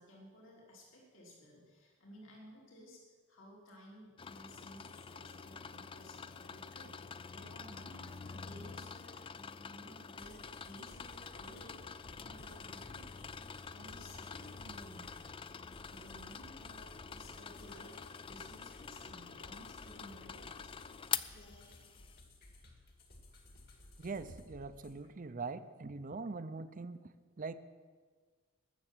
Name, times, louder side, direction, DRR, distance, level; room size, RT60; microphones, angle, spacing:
voice 1, 0.0-3.0 3.3-13.4 13.7-17.9 18.2-20.7, equal, 70° left, -2 dB, 3.3 m, -56 dB
sound 1, 4.2-22.2, left 7 dB, 25° left, 0.4 m, -46 dB
sound 2, 10.2-25.0, left 1 dB, 50° left, 2.2 m, -57 dB
voice 2, 24.0-27.0 27.4-27.5, right 4 dB, 40° right, 12 dB, 0.6 m, -42 dB
20.0 x 7.0 x 7.4 m, 1.5 s
head